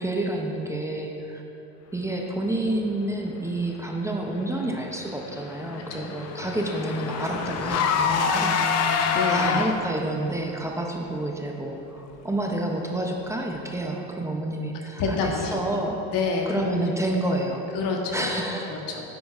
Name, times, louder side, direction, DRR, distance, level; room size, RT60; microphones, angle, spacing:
voice 1, 0.0-1.4 1.9-8.7 9.3-16.0 16.5-17.7 18.1-18.7, right 1 dB, 10° right, 1 dB, 0.5 m, -29 dB
Car / Engine, 5.0-10.1, left 6 dB, 50° left, 0.6 m, -26 dB
voice 2, 8.0-9.6 15.0-15.6 16.1-16.7 17.7-18.2 18.7-19.0, left 4 dB, 80° left, 1 dB, 1.2 m, -28 dB
9.4 x 8.4 x 2.4 m, 2.9 s
cardioid pair, 135°, 32 cm